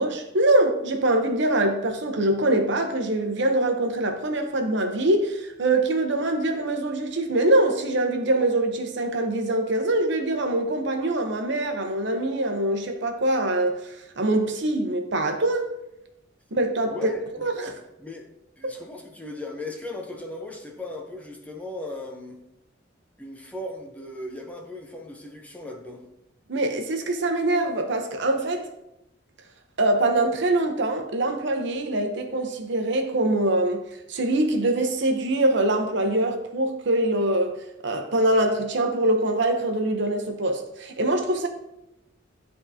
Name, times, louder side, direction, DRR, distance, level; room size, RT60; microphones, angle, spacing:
voice 1, 0.0-15.7 16.5-17.0 17.4-17.7 26.5-28.7 29.8-33.8 34.1-37.5 37.8-41.5, right 1 dB, 65° right, 0.8 m, -24 dB
voice 2, 16.9-17.2 17.6-18.3 18.6-22.4 23.2-26.1, left 2 dB, 10° left, 0.8 m, -37 dB
11.0 x 3.7 x 2.8 m
head